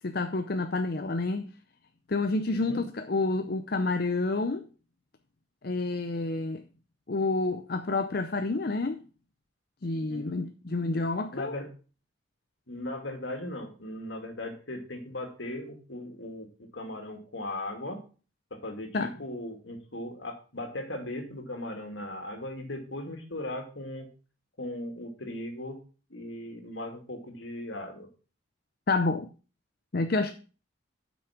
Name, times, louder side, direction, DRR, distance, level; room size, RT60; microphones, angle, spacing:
voice 1, 0.0-1.5 2.1-4.7 5.6-6.6 7.1-9.0 9.8-11.5 18.9-19.1 28.9-29.3 29.9-30.3, left 3 dB, 50° left, 0.6 m, -29 dB
voice 2, 9.9-10.3 11.3-11.7 12.7-16.5 16.7-18.0 18.5-24.1 24.6-25.8 26.1-28.1, left 1 dB, 70° left, 2.4 m, -38 dB
8.5 x 6.2 x 5.9 m
head